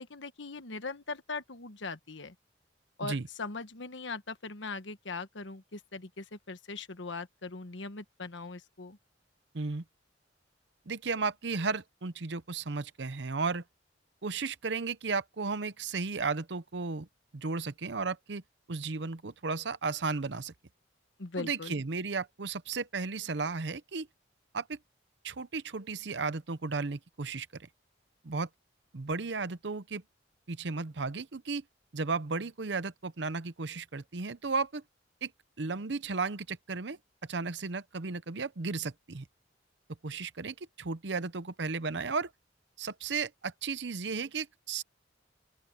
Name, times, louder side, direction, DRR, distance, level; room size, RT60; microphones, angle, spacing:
voice 1, 0.0-2.3 3.0-9.0 21.2-21.8, left 3 dB, 75° left, 1.3 m, -40 dB
voice 2, 10.9-13.6 14.2-17.1 17.3-18.4 18.7-20.5 21.4-24.1 24.5-24.8 25.2-27.7 28.2-28.5 28.9-30.0 30.5-31.6 31.9-34.8 35.2-35.3 35.6-37.0 37.3-39.2 40.0-42.3 42.8-44.8, right 4 dB, 65° right, 0.8 m, -34 dB
open air
head